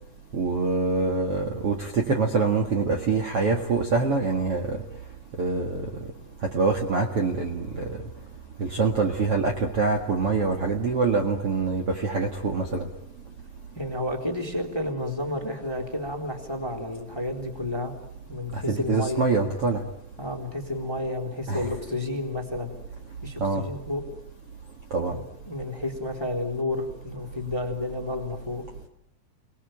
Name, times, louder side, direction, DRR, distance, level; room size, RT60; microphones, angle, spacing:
voice 1, 0.3-4.8 5.4-5.8 6.5-8.0 8.6-12.8 18.7-19.8 21.5-21.7 23.4-23.6 24.9-25.1, right 4 dB, 45° right, 2 dB, 2.3 m, -25 dB
voice 2, 13.7-17.9 18.3-19.3 20.2-22.7 23.2-24.0 25.0-28.6, left 2 dB, 5° left, 3 dB, 3.0 m, -31 dB
30.0 x 20.0 x 9.2 m, 0.84 s
omnidirectional pair, 4.7 m